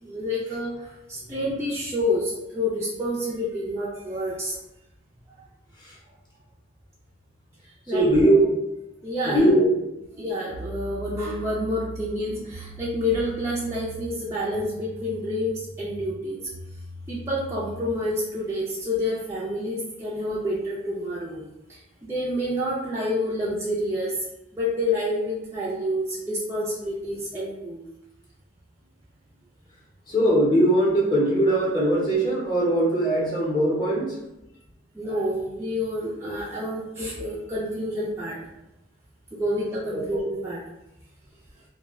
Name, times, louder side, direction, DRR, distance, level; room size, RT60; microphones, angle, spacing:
voice 1, 0.0-4.6 7.6-8.1 9.0-9.6 10.2-16.4 17.1-21.4 21.7-24.2 24.5-27.9 34.9-38.4 39.3-40.6, left 1 dB, 15° right, -8 dB, 0.4 m, -28 dB
voice 2, 7.9-8.6 9.2-9.8 30.1-34.2, right 1 dB, 20° left, -6 dB, 0.7 m, -20 dB
sound 1, 10.0-10.1 10.5-18.0, right 1 dB, 80° right, 0.7 m, -41 dB
2.2 x 2.1 x 3.5 m, 0.90 s
head